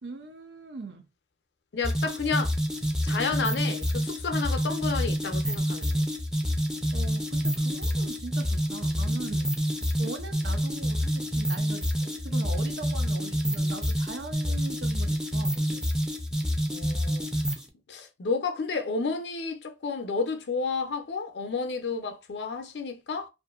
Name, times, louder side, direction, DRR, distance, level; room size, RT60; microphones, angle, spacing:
voice 1, 0.0-1.1 6.2-6.3 6.9-9.6 10.0-15.8, right 3 dB, 85° right, 0.6 m, -41 dB
voice 2, 1.7-2.5 3.0-6.1 16.7-17.3 17.9-23.3, left 4 dB, 70° left, 0.5 m, -31 dB
sound 1, 1.8-17.7, equal, 5° right, 0.4 m, -28 dB
2.5 x 2.5 x 2.3 m
head